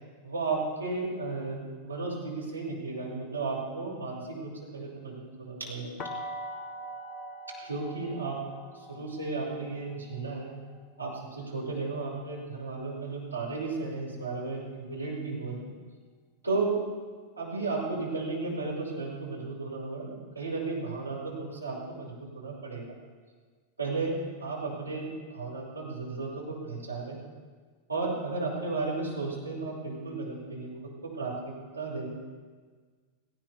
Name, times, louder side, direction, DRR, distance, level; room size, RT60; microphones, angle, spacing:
voice 1, 0.2-5.9 7.7-8.4 8.7-10.5 11.0-15.7 16.4-16.8 17.4-22.8 23.8-27.2 27.9-30.7 31.1-31.3 31.7-32.1, right 3 dB, 85° right, -5 dB, 5.6 m, -34 dB
sound 1, 6.0-11.8, equal, 25° left, 1.6 m, -43 dB
18.0 x 18.0 x 3.6 m, 1.5 s
figure-of-eight pair, 90°, 0 cm